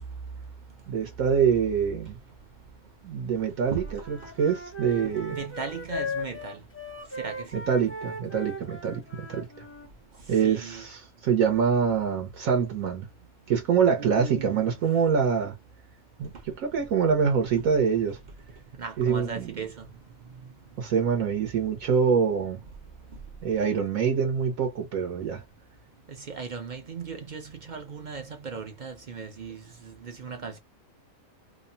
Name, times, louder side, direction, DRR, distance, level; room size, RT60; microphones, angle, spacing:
voice 1, 0.9-2.2 3.0-5.4 7.5-9.5 10.3-13.1 13.5-15.5 16.2-18.2 19.0-19.5 20.8-22.6 23.4-25.4, right 6 dB, 75° right, 1.2 m, -25 dB
Wind instrument woodwind instrument, 3.6-9.9, left 1 dB, 15° left, 0.5 m, -38 dB
voice 2, 5.0-6.6 7.2-7.5 10.4-10.8 14.0-14.8 18.8-19.9 26.1-30.6, right 5 dB, 55° right, 0.5 m, -37 dB
2.9 x 2.1 x 2.5 m
omnidirectional pair, 1.5 m